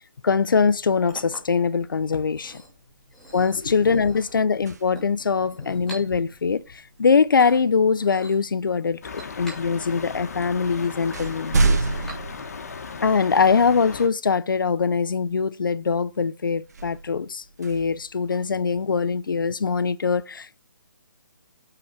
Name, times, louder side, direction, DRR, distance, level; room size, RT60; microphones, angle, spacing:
voice 1, 0.2-2.6 3.3-9.0 9.4-11.8 13.0-20.6, left 5 dB, 75° left, 0.7 m, -22 dB
Chink clink, 0.6-12.7, right 1 dB, 5° left, 2.5 m, -47 dB
sound 1, 2.8-2.9 3.2-5.3 7.4-7.6 8.4-9.2 10.0-10.1 10.5-13.4 13.9-14.0 16.6-18.8, right 3 dB, 50° right, 1.6 m, -29 dB
sound 2, 9.0-14.1, left 5 dB, 50° left, 1.7 m, -37 dB
8.5 x 4.8 x 7.5 m
hypercardioid pair, 175°, 11 cm